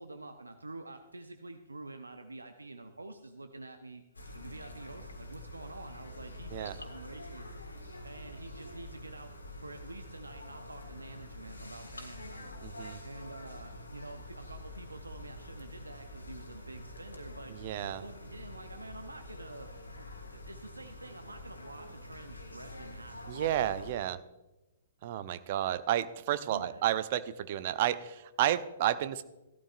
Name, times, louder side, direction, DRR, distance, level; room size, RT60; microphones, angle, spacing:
voice 1, 0.0-4.0 4.3-7.5 8.0-9.3 9.6-12.5 13.0-17.5 18.0-23.4 26.4-27.0, right 2 dB, 85° right, 7 dB, 0.7 m, -48 dB
sound 1, 4.1-23.9, left 1 dB, 80° left, 1.8 m, -46 dB
voice 2, 12.6-13.0 17.6-18.0 23.3-24.2 25.0-29.2, right 12 dB, 45° right, 13 dB, 0.6 m, -31 dB
16.5 x 12.5 x 2.5 m, 1.0 s
figure-of-eight pair, 115°, 0 cm